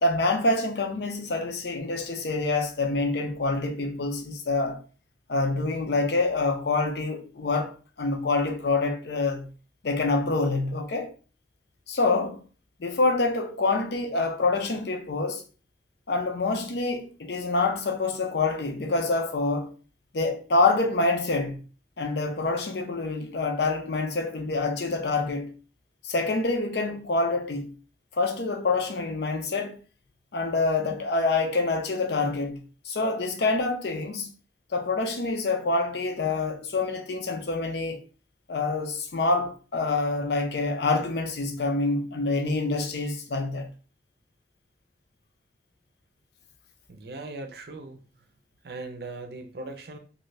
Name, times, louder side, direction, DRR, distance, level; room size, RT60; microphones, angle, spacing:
voice 1, 0.0-4.8 5.3-9.5 9.8-11.1 11.9-12.4 12.8-15.4 16.1-19.8 20.1-21.6 22.0-25.5 26.0-27.7 28.1-29.8 30.3-34.3 34.7-38.0 38.5-43.7, left 3 dB, 65° left, 0.6 m, -26 dB
voice 2, 46.9-48.0 48.6-50.0, right 2 dB, 60° right, 0.5 m, -39 dB
2.6 x 2.6 x 3.1 m
head